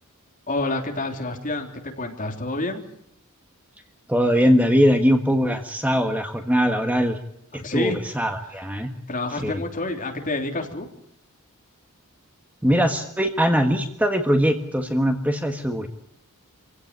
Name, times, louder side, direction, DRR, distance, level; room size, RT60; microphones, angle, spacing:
voice 1, 0.5-2.8 7.5-8.0 9.1-10.9, left 2 dB, 35° left, 2 dB, 3.5 m, -28 dB
voice 2, 4.1-7.2 7.5-8.9 9.4-9.6 12.6-15.9, equal, 5° right, 5 dB, 1.5 m, -21 dB
26.5 x 16.5 x 9.6 m, 0.76 s
head